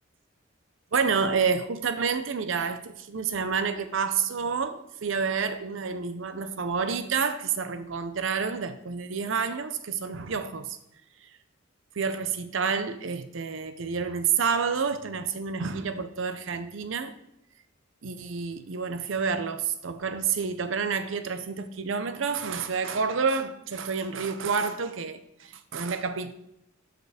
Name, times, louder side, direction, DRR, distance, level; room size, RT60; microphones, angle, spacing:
voice 1, 0.9-10.8 11.2-11.3 11.9-17.1 18.0-26.3, right 5 dB, 80° right, 0.6 m, -29 dB
6.6 x 5.2 x 4.9 m
head